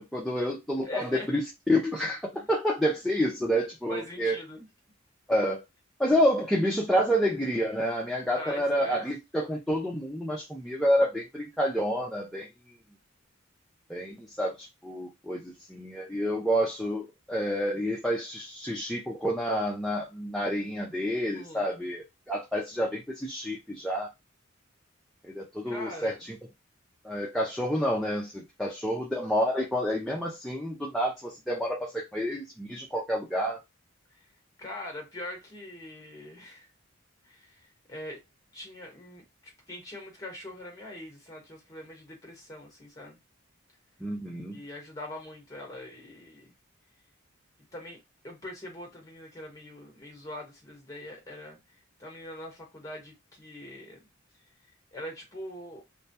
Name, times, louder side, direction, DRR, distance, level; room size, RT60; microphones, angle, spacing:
voice 1, 0.0-1.4 1.7-4.4 5.3-5.6 6.0-12.5 13.9-24.1 25.2-26.4 27.0-33.6 44.0-44.6, equal, ahead, 0.4 m, -29 dB
voice 2, 0.8-1.3 2.3-2.5 3.9-4.7 8.3-9.0 21.3-21.7 25.7-26.3 34.1-34.2 34.6-36.7 37.2-38.2 38.5-43.2 44.5-46.5 47.7-51.6 52.0-54.0 54.9-55.8, left 1 dB, 15° left, 0.9 m, -42 dB
2.2 x 2.2 x 2.6 m
head